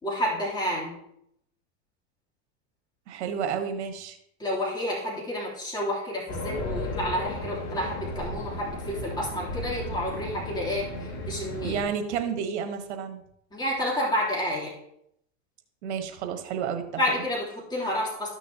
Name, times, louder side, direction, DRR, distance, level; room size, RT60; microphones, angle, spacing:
voice 1, 0.0-0.9 4.4-11.8 13.5-14.7 17.0-18.3, equal, 10° left, -5 dB, 3.1 m, -30 dB
voice 2, 3.1-4.2 11.6-13.2 15.8-16.9, right 7 dB, 80° right, 6 dB, 1.4 m, -31 dB
Race car auto racing, 6.3-11.8, left 1 dB, 50° left, 2.2 m, -35 dB
13.5 x 6.3 x 2.9 m, 0.74 s
supercardioid pair, 120°, 33 cm